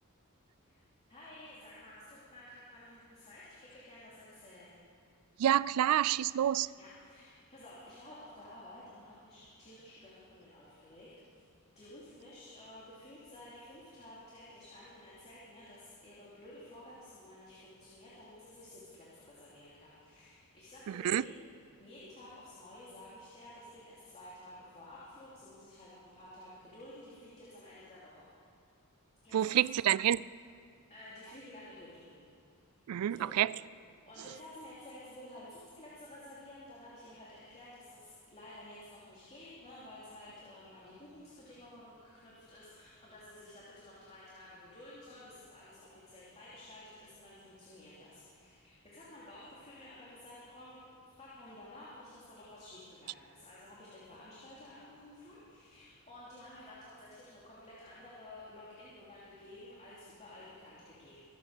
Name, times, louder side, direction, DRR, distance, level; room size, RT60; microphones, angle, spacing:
voice 1, 1.1-4.8 6.8-11.4 11.7-21.4 21.8-28.3 29.2-29.5 30.9-32.2 33.1-33.3 34.0-50.8 51.1-61.3, left 1 dB, 30° left, 3.0 m, -52 dB
voice 2, 5.4-6.7 20.9-21.2 29.3-30.2 32.9-33.5, right 11 dB, 75° right, 0.3 m, -28 dB
24.0 x 8.6 x 6.5 m
head